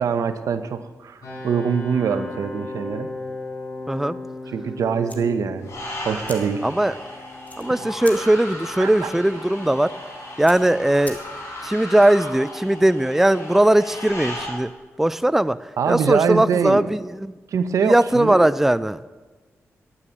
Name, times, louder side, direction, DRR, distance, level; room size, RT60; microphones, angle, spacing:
voice 1, 0.0-3.1 4.5-5.7 6.0-6.6 8.8-9.1 15.8-16.9 17.5-18.5, right 6 dB, 80° right, 10 dB, 0.9 m, -23 dB
sound 1, 1.2-14.0, left 2 dB, 90° left, 5.0 m, -39 dB
sound 2, 5.1-11.7, left 2 dB, 25° left, 2.3 m, -44 dB
sound 3, 5.6-14.5, left 1 dB, 60° left, 4.7 m, -36 dB
voice 2, 6.6-6.9 7.6-9.9 10.4-11.2 11.6-14.7 15.0-15.6 15.9-17.3 17.8-19.0, right 1 dB, 5° right, 15 dB, 0.4 m, -19 dB
11.0 x 9.8 x 8.5 m, 1.3 s
cardioid pair, 60°, 6 cm